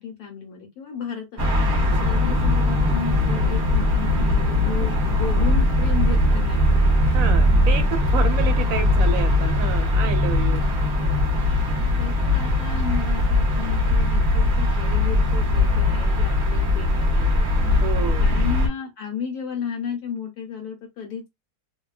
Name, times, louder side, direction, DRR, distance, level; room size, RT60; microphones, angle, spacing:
voice 1, 0.0-6.8 7.1-7.3 7.7-7.8 11.0-11.2 12.0-17.5 18.2-21.3, left 6 dB, 80° left, 1.2 m, -34 dB
sound 1, 1.4-18.7, left 1 dB, 40° right, 0.8 m, -20 dB
voice 2, 7.1-10.7 17.8-18.3, right 6 dB, 70° right, 0.9 m, -29 dB
2.8 x 2.2 x 2.3 m
omnidirectional pair, 1.7 m